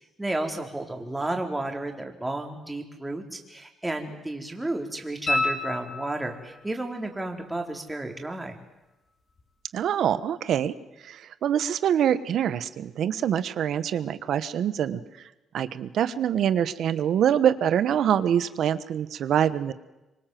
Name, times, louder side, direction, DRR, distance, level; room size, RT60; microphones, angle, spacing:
voice 1, 0.2-8.5, right 2 dB, 10° right, 3 dB, 4.0 m, -32 dB
sound 1, 5.3-6.6 9.4-9.5, left 2 dB, 40° left, 5.4 m, -28 dB
voice 2, 9.7-10.7 11.0-15.0 15.5-19.7, right 9 dB, 70° right, 14 dB, 1.3 m, -25 dB
25.5 x 24.5 x 7.8 m, 1.0 s
cardioid pair, 90°, 0 cm